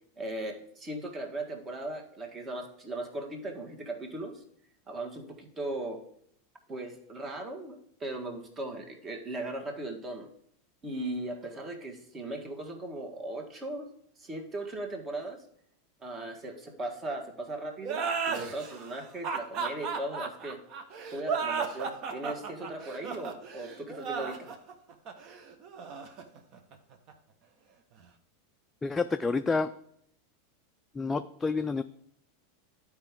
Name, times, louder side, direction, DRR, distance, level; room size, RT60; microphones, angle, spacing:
voice 1, 0.2-4.4 4.9-6.0 6.7-10.3 10.8-13.9 14.2-15.4 16.0-20.6 21.1-24.5, right 2 dB, 30° right, 3 dB, 1.6 m, -38 dB
sound 1, 17.8-27.1, right 5 dB, 45° right, 1.0 m, -35 dB
voice 2, 28.8-29.7 31.0-31.8, left 4 dB, 15° left, 8 dB, 0.3 m, -29 dB
11.5 x 4.7 x 3.6 m, 0.71 s
hypercardioid pair, 90°, 0 cm